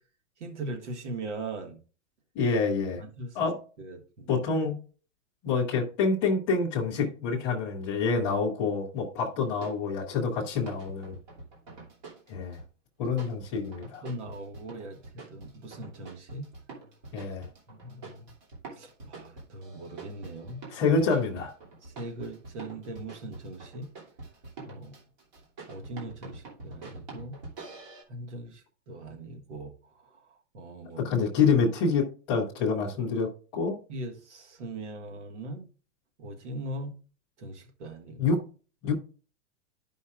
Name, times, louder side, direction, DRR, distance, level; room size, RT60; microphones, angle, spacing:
voice 1, 0.4-1.8 3.0-3.5 3.8-4.4 13.8-16.5 17.7-18.3 18.7-20.6 21.8-23.9 24.6-25.0 25.7-27.4 28.1-29.7 30.5-31.0 33.9-35.6 36.2-37.0 37.4-38.2, right 2 dB, 65° right, 1.7 m, -40 dB
voice 2, 2.3-3.0 3.3-3.6 4.3-4.8 5.4-11.2 12.3-12.6 13.0-14.0 17.1-17.4 20.7-21.5 31.0-33.8 38.2-38.4 38.8-38.9, left 4 dB, 5° left, 0.4 m, -27 dB
sound 1, 9.4-9.8 10.7-12.7 13.0-28.0, right 3 dB, 35° right, 2.8 m, -46 dB
12.5 x 5.4 x 2.4 m
hypercardioid pair, 180°, 38 cm